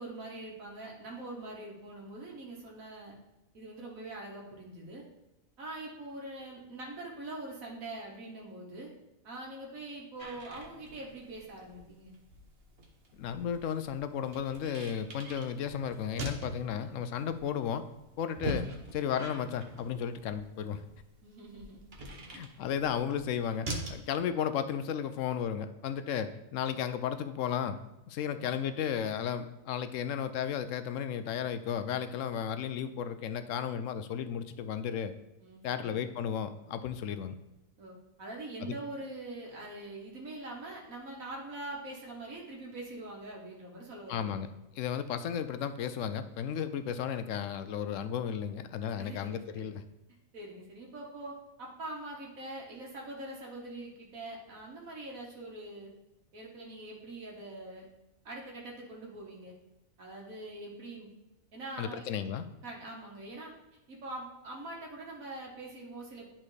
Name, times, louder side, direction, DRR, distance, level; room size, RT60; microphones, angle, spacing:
voice 1, 0.0-3.1 3.5-5.0 5.6-8.9 9.2-12.1 21.2-21.8 28.2-28.5 35.4-36.0 37.8-44.3 46.6-46.9 49.0-49.8 50.3-55.9 56.3-57.9 58.3-59.5 60.0-61.1 61.5-62.0 62.6-63.5 63.9-66.3, right 2 dB, 85° right, -2 dB, 1.8 m, -43 dB
sound 1, 10.2-24.1, right 1 dB, 50° right, 1.1 m, -43 dB
voice 2, 13.1-17.8 18.2-20.8 22.3-27.8 28.1-35.1 35.6-37.3 38.6-38.8 44.1-49.8 61.8-62.4, left 8 dB, 75° left, 10 dB, 0.9 m, -34 dB
10.5 x 4.3 x 3.2 m, 0.96 s
omnidirectional pair, 1.4 m